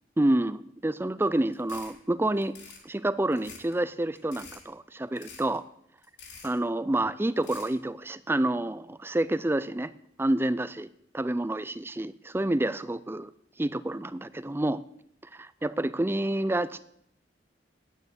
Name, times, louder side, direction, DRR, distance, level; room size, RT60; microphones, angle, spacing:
voice 1, 0.2-2.5 2.8-5.6 6.4-9.9 10.2-10.9 11.1-13.3 13.6-14.8 15.3-16.8, right 1 dB, 15° right, 16 dB, 0.4 m, -28 dB
sound 1, 1.5-2.0 2.4-2.8 3.3-3.7 4.1-4.6 5.2-5.6 6.0-6.6 7.4-7.7, left 5 dB, 75° left, 3.1 m, -47 dB
9.4 x 9.2 x 8.1 m, 0.71 s
head